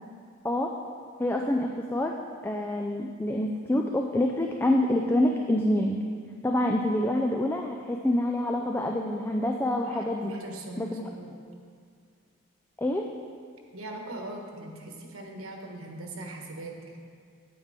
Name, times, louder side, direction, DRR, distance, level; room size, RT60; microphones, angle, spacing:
voice 1, 1.2-2.1 2.4-6.0 6.4-10.3 10.8-11.1 12.8-13.0, left 1 dB, 10° left, 2 dB, 0.3 m, -26 dB
voice 2, 9.8-11.4 13.7-17.0, right 2 dB, 90° right, 1 dB, 1.2 m, -40 dB
8.9 x 8.7 x 3.7 m, 2.1 s
head